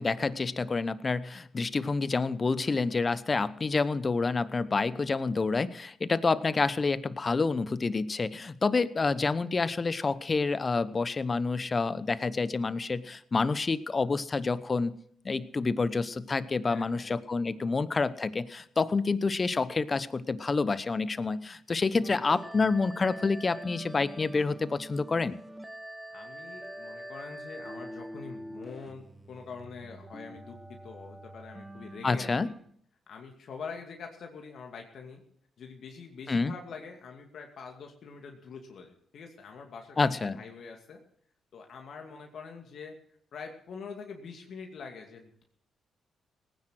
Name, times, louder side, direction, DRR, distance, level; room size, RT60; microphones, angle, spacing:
voice 1, 0.0-14.9 15.2-25.4 32.0-32.5 36.3-36.5 40.0-40.4, left 4 dB, 40° left, 16 dB, 1.0 m, -28 dB
voice 2, 16.6-17.1 22.1-22.4 26.1-32.5 33.1-35.2 35.6-41.0 41.5-42.9 43.3-45.4, left 5 dB, 65° left, 2 dB, 2.4 m, -45 dB
sound 1, 22.0-32.6, right 1 dB, 10° right, 1.6 m, -45 dB
18.5 x 9.9 x 6.3 m, 0.65 s
supercardioid pair, 50°, 0 cm